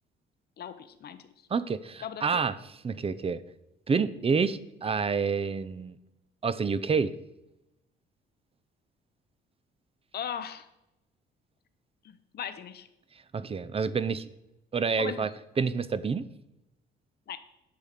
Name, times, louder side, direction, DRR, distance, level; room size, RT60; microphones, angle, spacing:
voice 1, 0.6-1.5 2.0-2.2 10.1-10.7 12.0-12.9 15.0-15.3 17.3-17.4, left 9 dB, 55° left, 10 dB, 0.8 m, -38 dB
voice 2, 1.5-2.5 2.8-3.4 3.9-6.0 6.4-7.1 13.3-14.2 14.7-15.3 15.6-16.3, right 5 dB, 30° right, 16 dB, 0.6 m, -28 dB
8.5 x 5.6 x 6.6 m, 0.88 s
cardioid pair, 90°, 20 cm